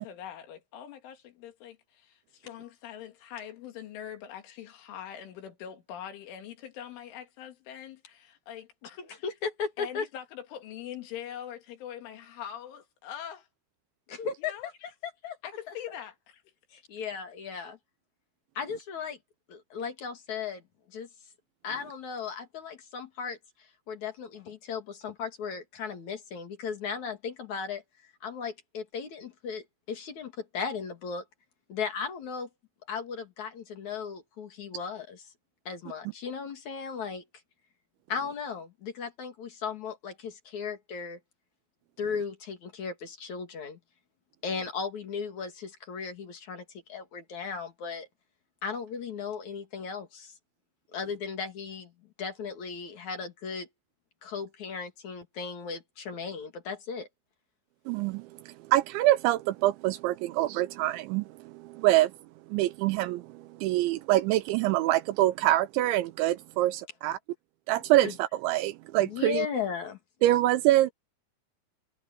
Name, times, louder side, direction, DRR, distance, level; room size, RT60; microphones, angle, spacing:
voice 1, 0.0-9.0 9.8-13.5 14.5-14.7 15.4-16.4 17.5-17.7, left 10 dB, 75° left, 4.7 m, -43 dB
voice 2, 9.2-10.1 14.1-15.4 15.7-15.8 16.7-17.8 18.5-19.2 19.5-20.6 20.9-21.1 21.6-27.8 28.2-31.2 31.7-32.5 32.9-35.3 35.6-37.2 38.1-41.2 42.0-43.8 44.4-48.1 48.6-50.3 50.9-51.9 52.2-53.7 54.2-57.1 68.0-68.1 69.0-70.0, left 6 dB, 45° left, 2.8 m, -36 dB
voice 3, 57.9-58.2 58.7-62.1 62.5-67.2 67.7-69.5 70.2-70.9, right 15 dB, 85° right, 2.8 m, -25 dB
omnidirectional pair, 5.7 m